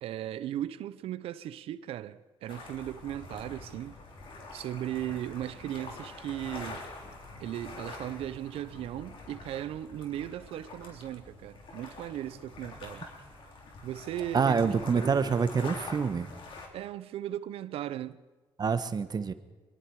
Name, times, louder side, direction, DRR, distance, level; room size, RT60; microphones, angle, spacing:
voice 1, 0.0-4.0 4.5-6.8 7.4-13.0 13.8-15.3 16.7-18.2, right 12 dB, 80° right, 0.8 m, -37 dB
sound 1, 2.5-16.7, left 3 dB, 65° left, 4.3 m, -46 dB
voice 2, 14.3-16.3 18.6-19.3, right 5 dB, 45° right, 1.3 m, -26 dB
24.0 x 22.5 x 4.8 m
cardioid pair, 75°, 10 cm